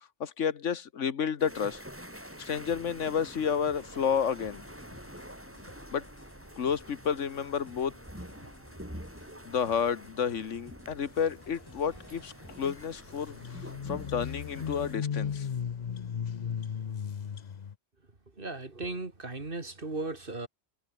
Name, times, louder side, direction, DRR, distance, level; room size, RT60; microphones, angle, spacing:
voice 1, 0.2-1.8 2.4-4.6 5.9-6.1 6.6-7.9 9.4-15.5, left 7 dB, 85° left, 1.6 m, -31 dB
sound 1, 1.4-15.0, equal, 10° right, 8.0 m, -47 dB
sound 2, 2.3-12.9, left 1 dB, 20° left, 4.1 m, -55 dB
sound 3, 12.7-12.8 13.0-17.7, left 7 dB, 45° left, 0.7 m, -36 dB
voice 2, 18.4-20.5, right 2 dB, 45° right, 2.9 m, -36 dB
omnidirectional pair, 1.2 m